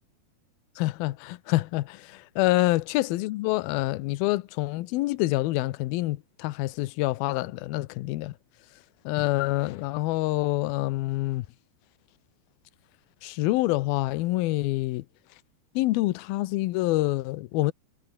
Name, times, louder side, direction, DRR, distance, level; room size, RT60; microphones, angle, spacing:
voice 1, 0.8-8.3 9.1-11.5 13.2-15.0 15.8-17.7, left 19 dB, 75° left, 2.2 m, -26 dB
omnidirectional pair, 5.2 m